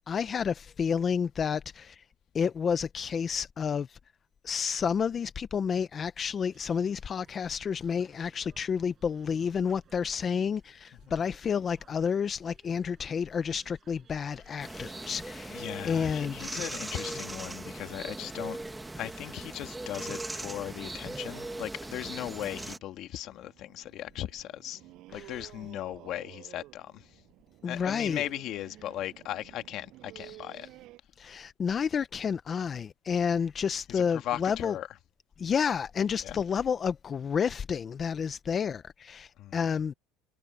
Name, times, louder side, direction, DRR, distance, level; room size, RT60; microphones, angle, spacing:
voice 1, 0.1-2.0 2.3-4.0 4.4-16.4 25.1-25.3 27.6-28.2 30.2-30.4 31.2-34.7 35.4-39.9, left 6 dB, 25° left, 0.6 m, -30 dB
sound 1, 6.5-15.1, right 8 dB, 30° right, 7.7 m, -62 dB
voice 2, 14.6-14.9 15.5-18.6 18.9-24.8 25.1-27.2 27.7-30.7 33.9-34.9 36.2-36.4 39.4-39.6, left 13 dB, 45° left, 1.6 m, -38 dB
sound 2, 14.6-22.8, right 2 dB, 10° right, 1.3 m, -39 dB
sound 3, 21.2-31.0, right 17 dB, 55° right, 7.7 m, -52 dB
cardioid pair, 150°, 0 cm